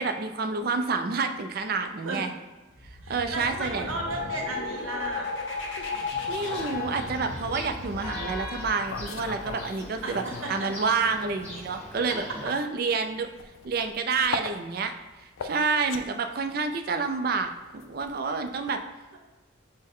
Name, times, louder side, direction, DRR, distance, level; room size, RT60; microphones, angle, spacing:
voice 1, 0.0-2.3 3.1-3.9 6.3-10.2 10.5-13.3 13.6-14.9 15.4-18.8, right 4 dB, 45° right, 6 dB, 0.4 m, -28 dB
sound 1, 2.7-10.3, left 4 dB, 65° left, 0.8 m, -35 dB
voice 2, 3.0-5.3 10.0-10.7 14.3-14.4, right 2 dB, 80° right, 0 dB, 0.9 m, -34 dB
Church bell, 6.4-12.5, left 2 dB, 10° left, 1.0 m, -41 dB
sound 2, 8.6-10.7 11.0-18.8, left 5 dB, 80° left, 0.4 m, -40 dB
6.3 x 2.1 x 3.6 m, 1.2 s
head